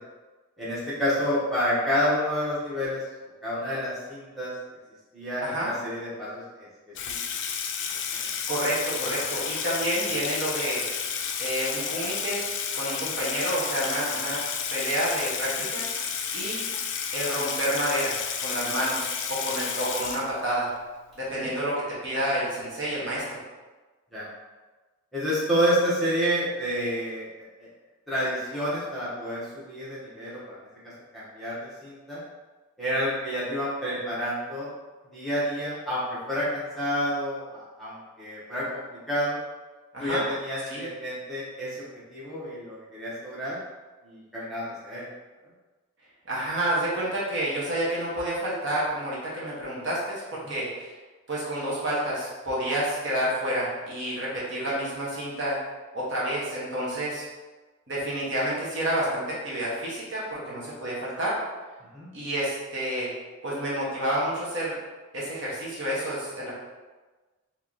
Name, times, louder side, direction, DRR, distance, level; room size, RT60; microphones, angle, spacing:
voice 1, 0.6-3.0 3.4-4.5 5.1-6.7 8.1-8.3 15.6-15.7 21.3-21.5 24.1-24.2 25.1-27.3 27.6-27.7 28.1-30.6 31.1-32.2 32.8-34.7 35.1-39.4 40.0-43.6 44.0-45.0 50.4-50.6 61.9-62.1, equal, ahead, -10 dB, 0.9 m, -29 dB
voice 2, 5.4-5.7 8.5-10.8 11.4-12.4 12.7-14.4 14.7-15.8 16.3-16.7 17.1-18.2 18.4-20.7 21.2-23.4 39.9-40.2 40.7-40.9 46.3-50.9 51.3-55.6 55.9-57.3 57.9-61.4 62.1-63.1 63.4-64.8 65.1-66.5, right 1 dB, 55° right, -6 dB, 1.1 m, -29 dB
Water tap faucet / Sink (filling or washing), 7.0-20.7, left 7 dB, 55° left, 0.3 m, -31 dB
3.0 x 2.9 x 3.8 m, 1.3 s
head